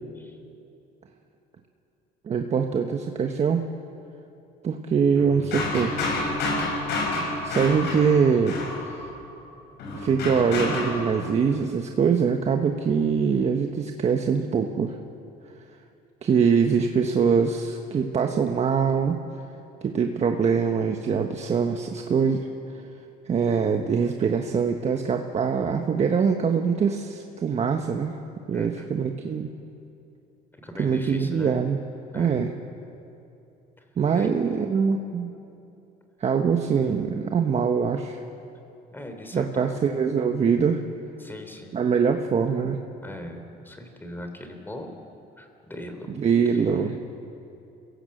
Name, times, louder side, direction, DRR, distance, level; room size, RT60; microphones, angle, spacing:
voice 1, 2.2-3.6 4.6-6.0 6.7-8.6 9.9-15.0 16.2-19.2 19.8-22.5 22.7-22.8 23.2-28.1 28.5-29.5 30.8-31.8 32.1-32.5 34.0-35.3 36.2-38.2 39.3-40.8 41.7-42.8 46.2-47.0, right 6 dB, 40° right, 4 dB, 1.3 m, -23 dB
sound 1, 5.2-9.2 9.8-11.0, left 2 dB, 75° left, 6.6 m, -29 dB
voice 2, 28.5-29.0 30.6-31.6 32.1-32.5 33.8-33.9 34.1-34.3 38.9-39.8 41.2-41.8 43.0-44.9 45.4-46.1 46.5-46.6, left 1 dB, 10° left, 5 dB, 3.4 m, -40 dB
28.5 x 16.5 x 7.9 m, 2.8 s
cardioid pair, 110°, 17 cm